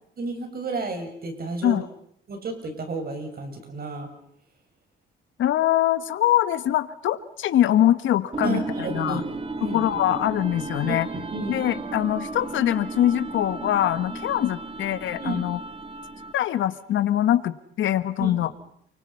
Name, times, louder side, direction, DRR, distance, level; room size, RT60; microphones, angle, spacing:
voice 1, 0.2-1.8 2.3-4.1 8.4-9.9 10.9-11.5 14.1-14.2 15.2-15.4 18.2-18.4, right 3 dB, 50° right, 5 dB, 6.7 m, -32 dB
voice 2, 5.4-9.2 9.6-11.1 11.5-15.6 16.3-18.5, left 12 dB, 75° left, 13 dB, 1.5 m, -23 dB
sound 1, 8.3-16.5, right 3 dB, 30° right, 2.2 m, -34 dB
29.0 x 24.5 x 5.7 m, 0.71 s
cardioid pair, 90°, 20 cm